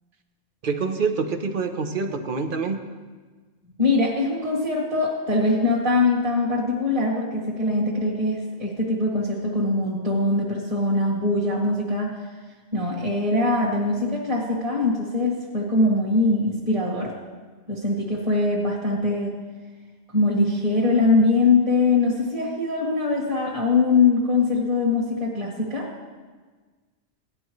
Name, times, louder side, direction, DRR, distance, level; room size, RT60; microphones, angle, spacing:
voice 1, 0.6-2.8, right 4 dB, 50° right, 6 dB, 1.0 m, -26 dB
voice 2, 3.8-12.1 12.7-17.1 17.7-19.3 20.1-25.9, left 3 dB, 30° right, -7 dB, 2.1 m, -22 dB
17.5 x 11.0 x 3.2 m, 1.4 s
omnidirectional pair, 1.3 m